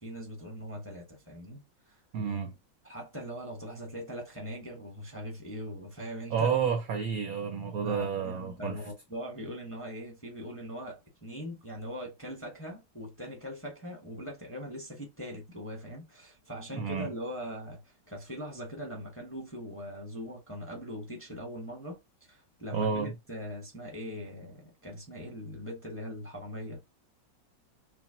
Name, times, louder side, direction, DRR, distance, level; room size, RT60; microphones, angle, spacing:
voice 1, 0.0-2.0 2.8-6.6 7.8-22.0 22.3-26.8, equal, 10° left, 0.8 m, -41 dB
voice 2, 2.1-2.5 6.3-8.7 16.7-17.1 22.7-23.1, right 6 dB, 70° right, 0.8 m, -30 dB
5.7 x 2.0 x 2.8 m
omnidirectional pair, 2.0 m